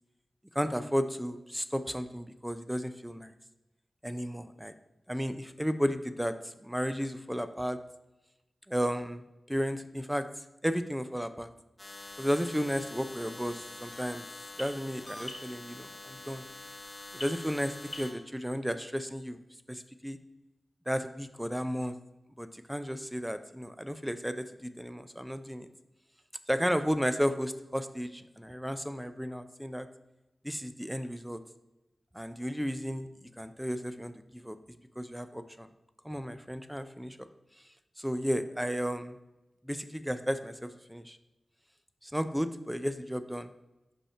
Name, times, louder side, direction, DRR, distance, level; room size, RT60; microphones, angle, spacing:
voice 1, 0.5-3.3 4.0-4.7 5.1-7.8 8.7-9.2 9.5-10.3 10.6-11.5 12.2-14.3 14.6-16.5 17.1-19.4 19.7-20.2 20.9-21.9 22.4-25.7 26.5-29.9 30.4-31.4 32.1-33.1 33.4-34.6 35.0-35.7 36.0-37.3 38.0-39.2 39.6-41.2 42.0-43.5, equal, 5° right, 10 dB, 0.4 m, -33 dB
sound 1, 11.8-18.1, left 1 dB, 25° left, 1.2 m, -44 dB
5.2 x 5.0 x 4.3 m, 0.99 s
wide cardioid pair, 100°, 0 cm